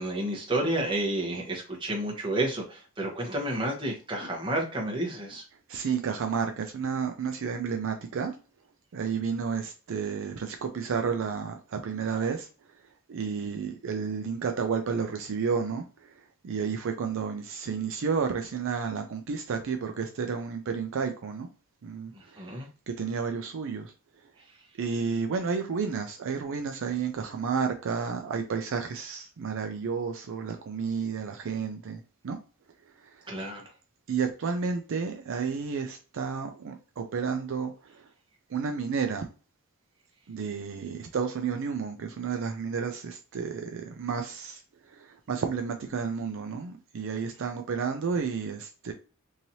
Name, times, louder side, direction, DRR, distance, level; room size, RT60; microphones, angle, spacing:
voice 1, 0.0-5.4 22.1-22.7 33.3-33.7, right 1 dB, 20° right, 1.0 m, -30 dB
voice 2, 5.7-8.3 8.9-12.5 13.1-16.2 16.4-21.5 21.8-22.6 23.0-23.9 24.8-32.4 33.0-33.2 34.1-38.1 38.5-39.3 40.3-44.6 44.9-48.9, right 5 dB, 60° right, 0.4 m, -31 dB
3.1 x 2.7 x 2.7 m
head